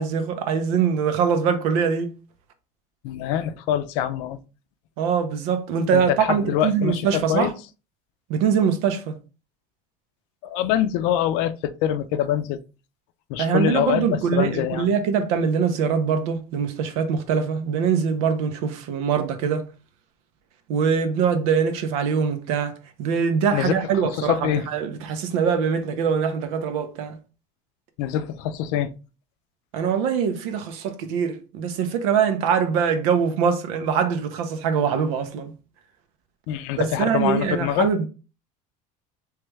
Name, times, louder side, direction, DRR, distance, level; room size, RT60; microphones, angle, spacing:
voice 1, 0.0-2.1 5.0-7.5 8.3-9.2 13.4-19.6 20.7-27.2 29.7-35.5 36.8-38.1, right 7 dB, 90° right, 0.8 m, -23 dB
voice 2, 3.0-4.4 5.9-7.5 10.4-12.6 13.3-14.9 23.5-23.7 24.2-24.7 28.0-28.9 36.5-37.9, left 10 dB, 75° left, 0.5 m, -24 dB
3.4 x 3.3 x 3.2 m
cardioid pair, 160°, 17 cm